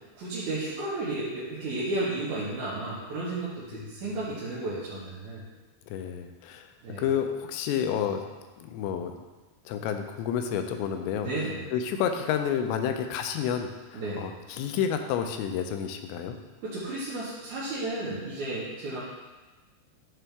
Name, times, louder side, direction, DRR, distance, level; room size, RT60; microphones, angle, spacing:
voice 1, 0.1-5.4 6.8-7.0 11.2-11.6 13.9-14.3 16.6-19.0, right 2 dB, 65° right, -9 dB, 2.0 m, -33 dB
voice 2, 5.9-6.7 7.0-8.2 8.6-9.1 9.7-11.3 11.7-16.4, left 8 dB, 90° left, 6 dB, 2.9 m, -30 dB
11.0 x 3.9 x 3.4 m, 1.2 s
omnidirectional pair, 5.0 m